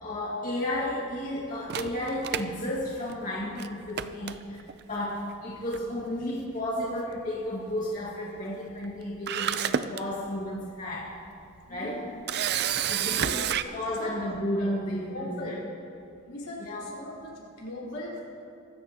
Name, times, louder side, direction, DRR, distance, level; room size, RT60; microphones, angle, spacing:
voice 1, 0.0-11.1 11.7-12.1 12.8-15.6 16.6-16.8, left 1 dB, 40° left, -6 dB, 2.0 m, -33 dB
Camera, 1.7-3.3 3.6-3.7 4.0-4.8 5.7-6.0 6.3-6.4 8.8-8.9 9.3-10.0 10.6-10.7 12.3-13.6, right 9 dB, 50° right, 0.5 m, -29 dB
voice 2, 11.7-12.2 13.1-13.4 13.6-14.1 15.1-15.6 16.3-18.2, left 1 dB, 75° left, -5 dB, 4.3 m, -39 dB
23.5 x 13.5 x 2.9 m, 2.5 s
head